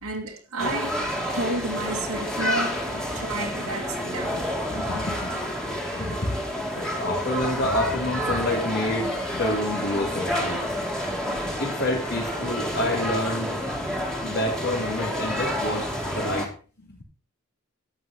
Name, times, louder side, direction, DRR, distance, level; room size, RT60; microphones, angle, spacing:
voice 1, 0.0-1.0 1.3-2.8 3.1-4.5 5.3-6.2 11.2-11.6, right 2 dB, 90° right, 2.2 m, -32 dB
sound 1, 0.6-16.5, equal, 5° left, 2.4 m, -29 dB
voice 2, 4.7-5.5 5.9-6.4 6.7-10.6 11.6-13.6 14.2-16.5 16.9-17.0, left 1 dB, 55° left, 3.5 m, -28 dB
12.5 x 8.7 x 4.4 m
head